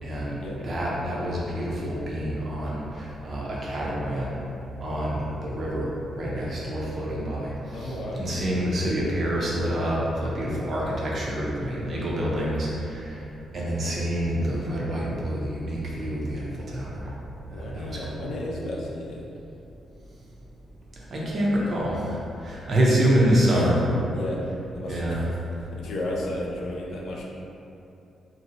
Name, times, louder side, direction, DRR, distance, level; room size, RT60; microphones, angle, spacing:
voice 1, 0.0-4.3 4.8-13.2 13.5-17.1 17.5-18.2 21.1-23.8 24.9-25.3, equal, 45° right, -5 dB, 0.6 m, -27 dB
voice 2, 7.7-8.5 16.0-16.3 17.5-19.3 23.5-23.8 24.1-24.4 24.7-25.3 25.8-27.2, left 1 dB, 70° left, -2 dB, 0.4 m, -33 dB
2.7 x 2.1 x 3.8 m, 2.8 s
cardioid pair, 125°, 0 cm